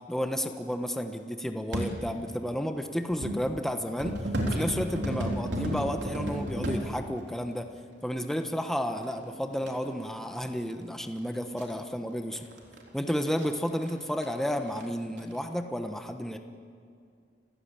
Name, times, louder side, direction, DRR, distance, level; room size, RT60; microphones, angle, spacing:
voice 1, 0.1-4.1 4.4-7.7 8.0-12.4 12.9-16.4, equal, ahead, 5 dB, 1.1 m, -32 dB
sound 1, 1.7-1.9 2.8-3.4 4.0-6.8 8.2-8.3 9.0-9.7 10.7-10.8 11.1-11.2 11.6-11.7 12.3-13.9 14.2-14.3 14.6-14.9 15.2-15.4, equal, 75° right, 3.7 m, -32 dB
30.0 x 15.5 x 8.9 m, 2.3 s
head